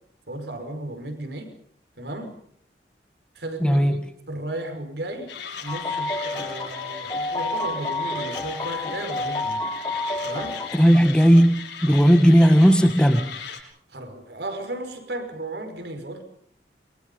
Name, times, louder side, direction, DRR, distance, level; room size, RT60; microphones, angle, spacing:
voice 1, 0.3-1.5 2.0-2.4 3.4-5.3 5.6-9.7 10.2-10.7 13.9-16.2, right 1 dB, 75° right, 5.5 m, -34 dB
voice 2, 3.6-4.1 10.7-13.3, equal, 5° left, 1.7 m, -16 dB
Mechanisms, 5.3-13.6, left 7 dB, 80° left, 6.6 m, -38 dB
sound 1, 5.7-10.8, left 2 dB, 25° left, 4.1 m, -30 dB
28.0 x 23.5 x 5.5 m
head